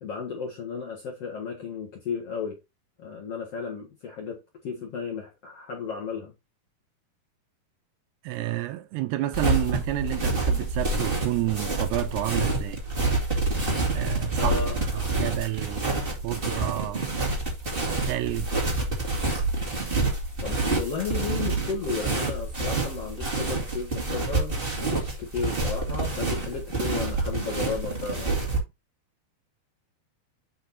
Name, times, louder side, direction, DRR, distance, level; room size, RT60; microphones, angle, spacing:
voice 1, 0.0-2.6 3.0-6.3 14.4-15.2 20.4-24.6 24.9-28.3, left 5 dB, 55° left, 1.8 m, -34 dB
voice 2, 8.2-12.8 13.9-17.0 17.8-18.7, right 16 dB, 80° right, 2.6 m, -30 dB
sound 1, 9.3-28.6, right 3 dB, 30° right, 1.0 m, -27 dB
7.8 x 6.3 x 2.7 m
omnidirectional pair, 4.9 m